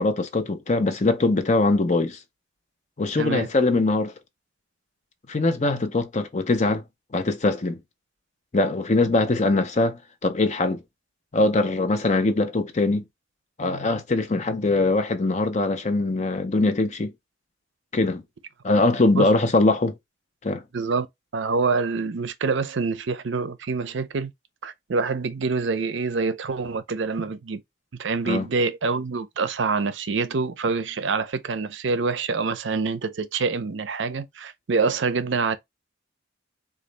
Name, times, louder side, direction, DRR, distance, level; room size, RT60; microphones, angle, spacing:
voice 1, 0.0-2.2 3.0-4.1 5.3-6.8 7.1-7.8 8.5-10.8 11.3-13.0 13.6-17.1 17.9-18.2 18.6-19.9 20.4-20.6 28.3-28.4, left 2 dB, 40° left, 0.6 m, -22 dB
voice 2, 3.2-3.5 19.1-19.3 20.7-21.1 21.3-24.3 24.6-27.6 28.0-35.6, right 4 dB, 70° right, 0.5 m, -26 dB
3.9 x 2.4 x 3.3 m
head